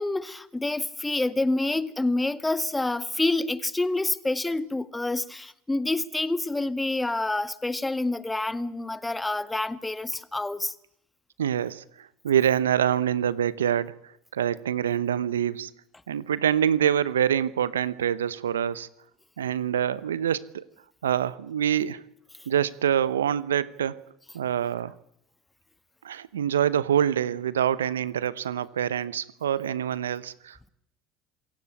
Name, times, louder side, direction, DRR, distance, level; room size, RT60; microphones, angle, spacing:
voice 1, 0.0-10.7, left 2 dB, 10° left, 1.6 m, -27 dB
voice 2, 11.4-15.7 16.1-18.9 19.4-20.6 21.0-22.0 22.5-24.0 24.3-24.9 26.0-30.7, right 9 dB, 85° right, 0.8 m, -26 dB
27.5 x 16.5 x 8.8 m
hypercardioid pair, 75°, 0 cm